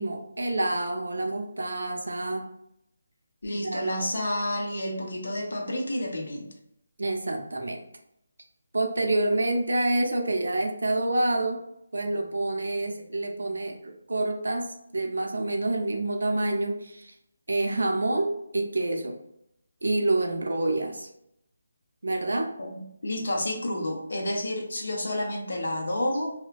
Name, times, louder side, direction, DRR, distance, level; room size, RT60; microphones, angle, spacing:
voice 1, 0.0-2.5 3.5-3.9 7.0-7.8 8.7-11.6 11.9-17.1 17.5-19.2 19.8-21.1 22.0-22.5, right 2 dB, 85° right, 3 dB, 0.5 m, -27 dB
voice 2, 3.4-6.5 22.6-26.3, left 1 dB, 55° left, 1 dB, 0.6 m, -30 dB
2.4 x 2.1 x 2.4 m, 0.77 s
hypercardioid pair, 180°, 0 cm